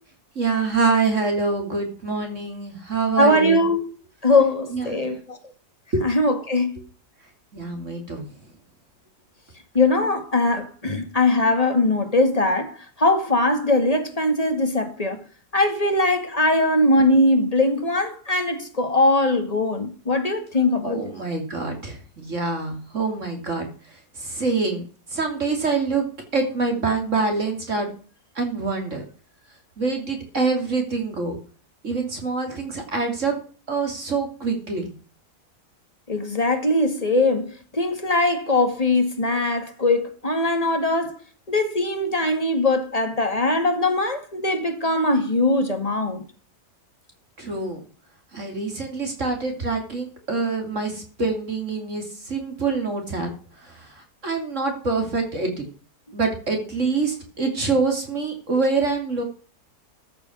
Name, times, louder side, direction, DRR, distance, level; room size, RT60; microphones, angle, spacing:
voice 1, 0.3-3.6 4.7-5.0 5.9-6.0 7.5-8.3 20.8-24.8 25.1-26.1 26.3-27.9 28.3-29.0 29.8-31.4 31.8-33.4 33.7-34.9 47.4-47.8 48.3-53.3 53.6-55.6 56.1-59.2, right 4 dB, 50° right, 3.2 m, -25 dB
voice 2, 3.2-3.8 4.2-5.4 6.0-6.8 9.7-15.2 15.5-21.0 36.1-41.2 41.5-46.2, left 2 dB, 25° left, 2.2 m, -21 dB
14.0 x 6.7 x 6.2 m
omnidirectional pair, 1.7 m